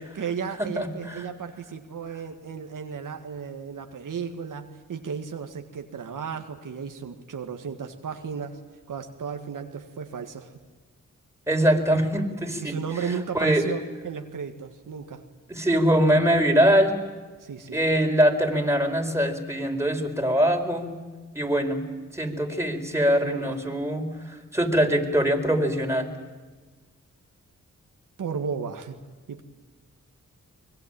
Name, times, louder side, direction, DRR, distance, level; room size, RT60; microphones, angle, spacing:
voice 1, 0.1-8.6 8.9-10.5 12.6-15.2 17.4-17.8 23.2-23.6 28.2-29.0 29.3-29.4, right 6 dB, 75° right, 5 dB, 1.9 m, -34 dB
voice 2, 11.5-12.8 13.3-13.7 15.5-17.0 17.7-20.9 21.3-21.8 22.1-26.1, equal, 10° right, 3 dB, 4.6 m, -22 dB
25.0 x 21.0 x 9.0 m, 1.4 s
cardioid pair, 60°, 32 cm